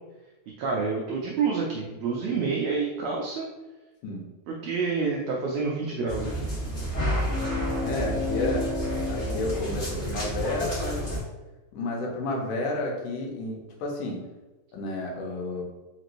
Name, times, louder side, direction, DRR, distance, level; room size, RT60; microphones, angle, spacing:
voice 1, 0.6-3.5 4.5-6.5, right 4 dB, 85° right, -2 dB, 1.5 m, -28 dB
sound 1, 6.1-11.2, left 1 dB, 40° left, 1.0 m, -29 dB
voice 2, 7.8-8.7 9.1-11.1 11.7-14.3 14.7-15.6, left 2 dB, 90° left, -1 dB, 2.3 m, -31 dB
5.1 x 3.0 x 2.5 m, 1.1 s
omnidirectional pair, 3.6 m